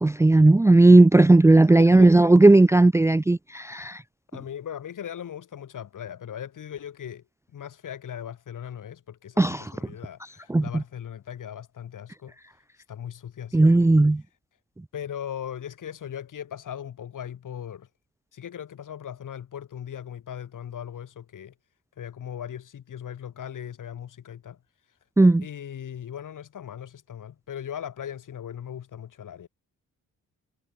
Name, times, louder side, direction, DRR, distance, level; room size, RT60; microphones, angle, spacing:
voice 1, 0.0-4.0 9.4-9.6 10.5-10.6 13.5-14.2 25.2-25.4, right 2 dB, 10° right, 0.5 m, -16 dB
voice 2, 1.6-2.1 4.3-7.2 7.5-12.4 12.8-13.9 14.2-14.3 14.9-17.9 18.3-21.5 22.0-24.6 24.9-25.0 25.4-29.5, left 9 dB, 65° left, 7.4 m, -38 dB
cardioid pair, 70°, 33 cm